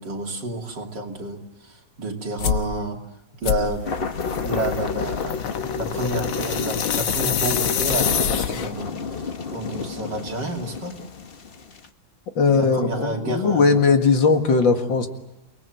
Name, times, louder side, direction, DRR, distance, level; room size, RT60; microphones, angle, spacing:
voice 1, 0.0-3.0 3.4-5.5 5.7-11.0 12.5-13.8, right 1 dB, 60° right, 1 dB, 3.5 m, -30 dB
sound 1, 2.4-2.7 3.4-8.9, left 8 dB, 90° left, 2.0 m, -26 dB
sound 2, 3.8-11.9, left 5 dB, 35° left, 1.0 m, -32 dB
voice 2, 12.4-15.1, left 4 dB, 70° left, 5 dB, 2.6 m, -18 dB
29.5 x 19.5 x 9.1 m, 0.98 s
omnidirectional pair, 2.2 m